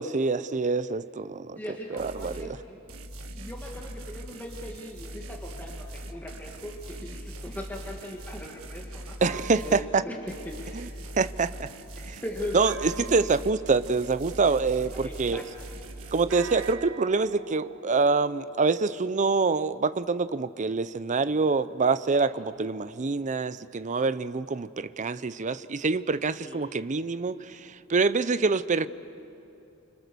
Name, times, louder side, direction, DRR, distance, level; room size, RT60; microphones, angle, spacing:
voice 1, 0.0-1.6 1.9-2.6 9.2-10.0 10.7-10.9 11.2-11.7 12.1-12.2 12.5-15.4 16.1-28.9, right 4 dB, 35° right, 14 dB, 0.6 m, -26 dB
voice 2, 1.6-2.8 3.3-9.1 9.6-10.2 10.4-10.9 12.2-12.6 13.0-13.3 15.0-15.7 22.2-22.4 26.4-26.6, left 1 dB, 10° left, -1 dB, 1.8 m, -40 dB
sound 1, 2.0-2.5 2.9-9.9 10.3-16.7, right 1 dB, 80° right, 1.6 m, -41 dB
sound 2, 8.7-11.6 12.7-15.1 16.3-20.9, right 2 dB, 60° right, 1.4 m, -45 dB
29.0 x 26.0 x 6.9 m, 2.8 s
head